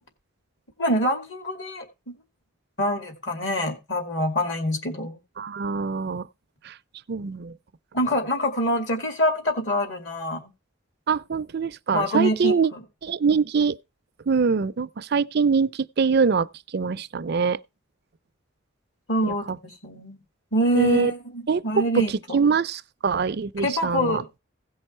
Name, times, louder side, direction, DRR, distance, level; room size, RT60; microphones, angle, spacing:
voice 1, 0.8-2.2 2.8-5.2 7.9-10.5 11.9-12.8 19.1-20.2 20.5-22.4 23.6-24.3, equal, 60° left, 2.4 m, -25 dB
voice 2, 5.4-6.3 6.6-6.7 7.1-7.5 11.1-12.7 13.0-13.8 14.3-16.5 16.7-17.6 19.2-19.6 20.7-21.1 21.5-22.0 22.3-24.2, right 5 dB, 50° right, 0.5 m, -23 dB
16.0 x 5.4 x 4.4 m
head